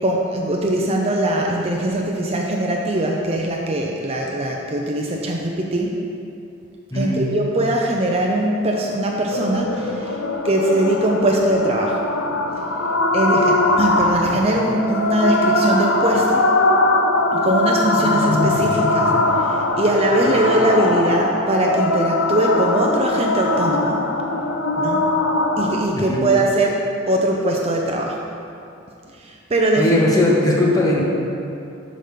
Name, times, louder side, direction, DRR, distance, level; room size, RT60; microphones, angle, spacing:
voice 1, 0.0-6.0 6.9-10.2 10.4-12.0 13.1-16.5 17.3-24.1 24.8-25.0 25.6-26.8 27.1-28.2 29.1-30.1, right 1 dB, 30° right, 0 dB, 0.5 m, -21 dB
voice 2, 6.9-7.2 25.9-26.2 29.8-31.0, left 1 dB, 15° left, -3 dB, 1.0 m, -18 dB
sound 1, 9.3-25.8, left 2 dB, 65° left, 0.6 m, -21 dB
6.0 x 5.1 x 6.5 m, 2.6 s
head